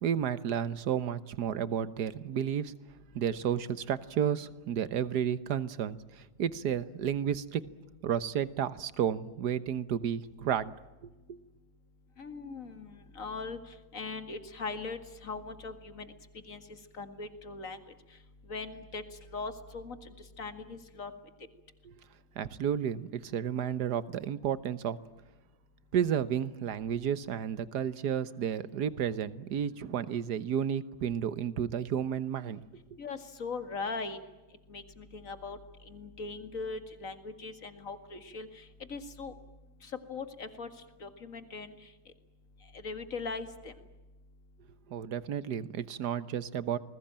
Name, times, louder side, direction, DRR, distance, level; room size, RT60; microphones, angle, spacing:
voice 1, 0.0-2.7 3.1-7.6 8.0-10.7 11.0-11.4 22.3-25.0 25.9-32.6 44.9-46.8, right 8 dB, 70° right, 16 dB, 1.6 m, -32 dB
voice 2, 12.2-16.1 16.5-16.6 17.0-17.9 18.5-19.0 19.3-20.0 20.4-21.1 33.0-34.2 34.7-35.6 35.9-39.3 39.8-40.7 41.0-41.7 42.7-43.7, left 4 dB, 50° left, 10 dB, 2.4 m, -40 dB
28.5 x 21.0 x 8.9 m, 1.1 s
omnidirectional pair, 1.8 m